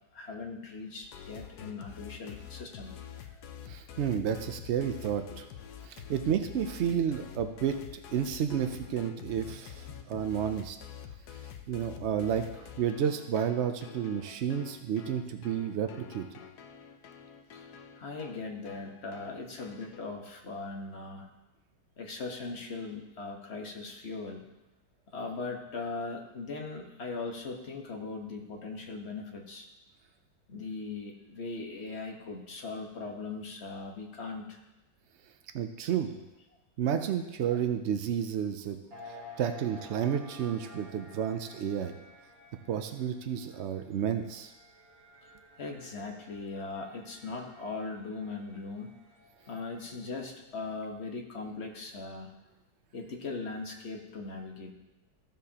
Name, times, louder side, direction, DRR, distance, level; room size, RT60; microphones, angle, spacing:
voice 1, 0.1-3.0 4.8-4.9 5.3-5.4 8.5-8.6 9.5-9.6 9.9-10.0 17.5-17.7 18.0-21.3 22.0-24.5 25.1-29.7 30.5-34.6 37.5-37.6 45.6-49.0 49.5-52.3 52.9-54.7, left 3 dB, 40° left, 1 dB, 1.3 m, -39 dB
sound 1, 1.0-20.0, left 9 dB, 70° left, 1.2 m, -47 dB
voice 2, 3.7-5.4 5.9-10.8 11.7-16.3 35.5-36.2 36.8-38.8 39.4-41.9 42.7-44.5, right 8 dB, 85° right, 7 dB, 0.6 m, -31 dB
sound 2, 38.9-50.3, left 1 dB, 55° right, 2.3 m, -53 dB
14.5 x 7.3 x 2.9 m, 0.98 s
omnidirectional pair, 1.9 m